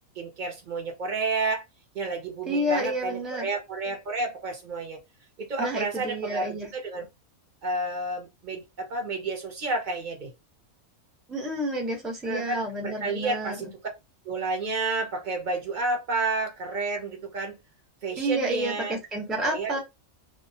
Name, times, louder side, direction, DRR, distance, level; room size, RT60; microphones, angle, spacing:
voice 1, 0.2-1.6 1.9-5.0 5.4-7.1 7.6-10.3 12.2-13.7 14.3-17.5 18.0-19.0 19.4-19.8, right 3 dB, 55° right, 0.5 m, -30 dB
voice 2, 2.5-3.5 5.6-6.7 11.3-13.7 18.2-19.8, right 1 dB, ahead, 0.4 m, -30 dB
2.3 x 2.1 x 2.6 m
omnidirectional pair, 1.5 m